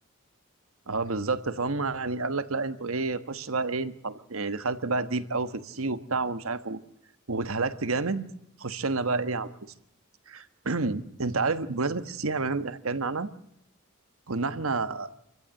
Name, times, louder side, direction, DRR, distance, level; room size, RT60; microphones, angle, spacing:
voice 1, 0.9-6.8 7.3-8.3 8.6-9.5 10.3-13.3 14.3-15.1, right 3 dB, 80° right, 12 dB, 1.3 m, -29 dB
27.5 x 15.5 x 7.8 m, 0.78 s
head